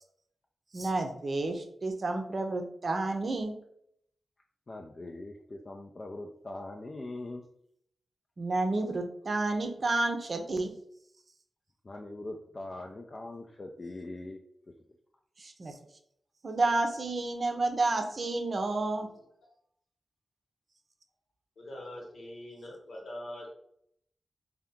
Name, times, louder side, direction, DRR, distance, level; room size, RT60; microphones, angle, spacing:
voice 1, 0.7-3.5 8.4-10.7 15.4-15.7 16.4-19.1, right 2 dB, 55° right, 4 dB, 0.6 m, -30 dB
voice 2, 4.7-7.4 11.8-14.4, left 2 dB, 45° left, 1 dB, 0.4 m, -41 dB
voice 3, 21.6-23.5, left 1 dB, 75° left, -1 dB, 1.0 m, -43 dB
2.7 x 2.3 x 3.5 m, 0.70 s
cardioid pair, 50°, 0 cm